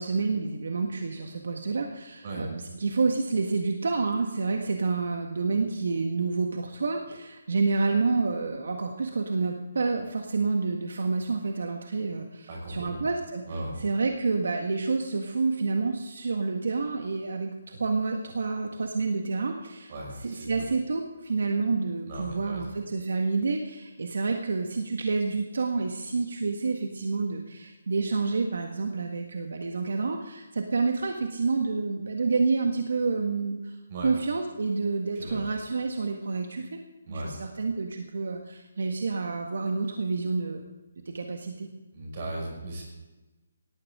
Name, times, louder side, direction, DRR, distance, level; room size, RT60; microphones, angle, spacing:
voice 1, 0.0-13.4 13.8-19.9 20.2-33.8 34.0-36.8 37.1-40.7 41.1-41.7, right 4 dB, 65° right, 3 dB, 1.7 m, -28 dB
voice 2, 12.5-13.0 13.5-13.8 19.9-20.6 22.1-22.7 33.9-34.1 35.1-35.4 37.1-37.3 41.9-42.8, right 1 dB, 30° right, -2 dB, 5.8 m, -37 dB
18.5 x 15.0 x 3.8 m, 1.1 s
hypercardioid pair, 175°, 0 cm